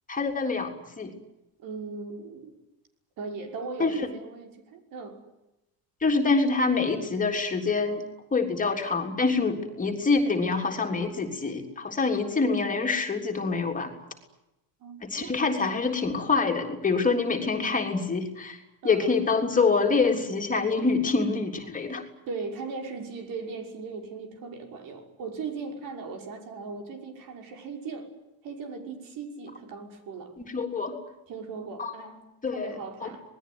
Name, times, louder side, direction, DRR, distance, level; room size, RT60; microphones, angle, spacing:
voice 1, 0.1-1.1 3.8-4.1 6.0-8.1 8.3-13.9 15.0-18.6 18.8-22.0 30.5-31.0 31.8-32.1 32.4-32.7 33.0-33.1, left 4 dB, 20° left, 3.4 m, -26 dB
voice 2, 1.6-2.6 3.2-5.3 14.8-15.3 18.8-19.1 21.2-21.3 22.3-28.1 28.4-30.3 31.3-33.2, right 4 dB, 60° right, 5.8 m, -38 dB
27.0 x 20.0 x 9.6 m
cardioid pair, 145°, 39 cm